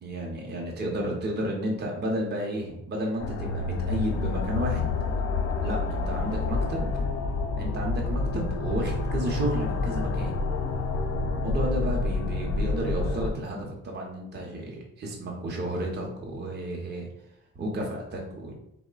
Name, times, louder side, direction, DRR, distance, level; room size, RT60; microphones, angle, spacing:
voice 1, 0.0-4.9 5.6-6.9 7.6-10.3 11.4-17.1 17.5-18.5, right 1 dB, 35° right, -1 dB, 0.6 m, -32 dB
sound 1, 3.2-13.3, left 3 dB, 55° left, 0.4 m, -28 dB
3.2 x 2.0 x 2.3 m, 0.77 s
cardioid pair, 90°, 30 cm